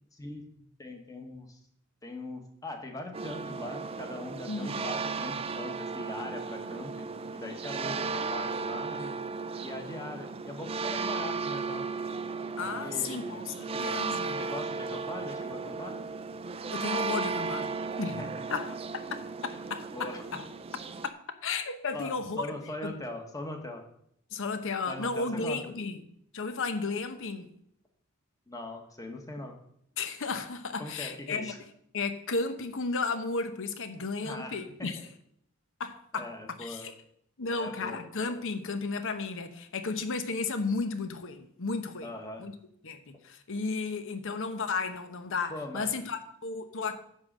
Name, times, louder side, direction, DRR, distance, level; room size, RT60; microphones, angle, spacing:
voice 1, 0.8-1.6 2.0-7.1 7.3-9.2 9.6-11.9 12.8-13.4 14.4-16.0 18.2-18.3 19.5-19.6 19.9-20.2 21.9-23.8 24.9-25.6 28.5-29.6 30.8-31.6 34.2-34.9 36.1-36.9 37.5-38.0 42.0-42.4 45.5-45.9, left 2 dB, 15° left, 1.3 m, -41 dB
sound 1, 3.1-21.1, right 4 dB, 25° right, 0.4 m, -35 dB
voice 2, 4.5-4.8 7.8-8.1 12.6-14.4 16.7-17.7 18.0-18.8 19.7-20.5 21.4-22.5 22.8-23.0 24.3-26.0 26.3-27.5 30.0-31.5 31.9-35.0 35.8-36.9 37.4-42.5 42.8-47.0, left 4 dB, 60° left, 0.9 m, -34 dB
10.5 x 3.8 x 7.4 m
head